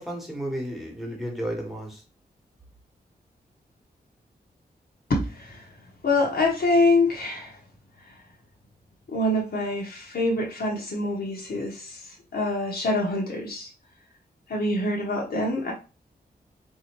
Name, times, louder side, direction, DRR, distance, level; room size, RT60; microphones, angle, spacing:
voice 1, 0.0-2.0, equal, ahead, -1 dB, 1.2 m, -33 dB
voice 2, 5.1-5.6 6.0-7.6 9.1-13.7 14.5-15.7, left 2 dB, 65° left, -2 dB, 1.0 m, -25 dB
4.1 x 2.8 x 3.0 m, 0.32 s
wide cardioid pair, 145°, 17 cm